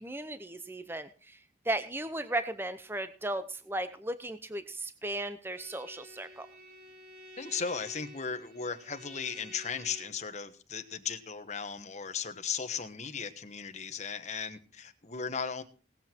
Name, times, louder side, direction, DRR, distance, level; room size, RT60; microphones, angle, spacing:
voice 1, 0.0-1.4 1.7-6.5, right 1 dB, 10° right, 11 dB, 0.7 m, -36 dB
Bowed string instrument, 5.5-10.2, equal, 55° right, 4.2 m, -51 dB
voice 2, 7.4-15.6, left 6 dB, 35° left, 7 dB, 1.3 m, -36 dB
18.5 x 8.0 x 4.4 m, 0.36 s
head